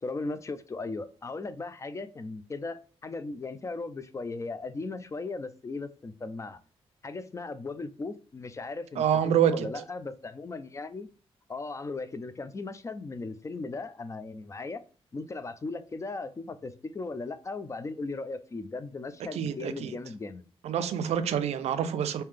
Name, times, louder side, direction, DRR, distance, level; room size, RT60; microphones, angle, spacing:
voice 1, 0.0-6.6 7.0-9.0 9.4-11.1 11.5-14.8 15.1-20.4, left 3 dB, 30° left, 0.4 m, -37 dB
voice 2, 9.0-9.8 19.3-20.0 20.6-22.2, right 9 dB, 85° right, 0.4 m, -27 dB
3.2 x 2.7 x 3.5 m
cardioid pair, 95°, 11 cm